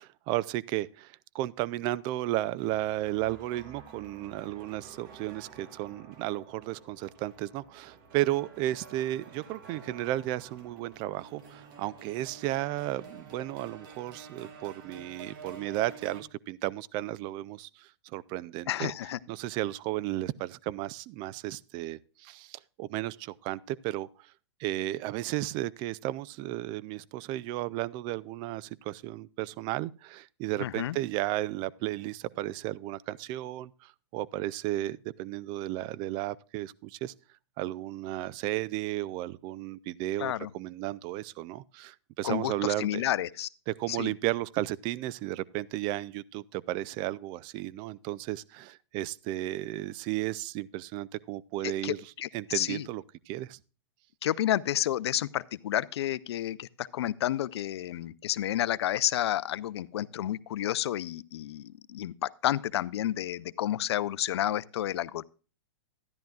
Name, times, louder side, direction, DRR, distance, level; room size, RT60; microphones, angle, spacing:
voice 1, 0.0-18.9 19.3-24.3 24.6-37.1 37.6-43.0 43.7-53.6, right 15 dB, 35° right, 0.4 m, -34 dB
sound 1, 2.3-16.2, right 5 dB, 50° right, 2.3 m, -50 dB
voice 2, 18.7-19.2 30.6-31.0 40.2-40.5 42.2-43.5 43.9-44.1 51.6-52.3 52.5-52.9 54.2-65.2, left 12 dB, 70° left, 0.5 m, -30 dB
13.0 x 10.5 x 2.4 m
hypercardioid pair, 135°, 14 cm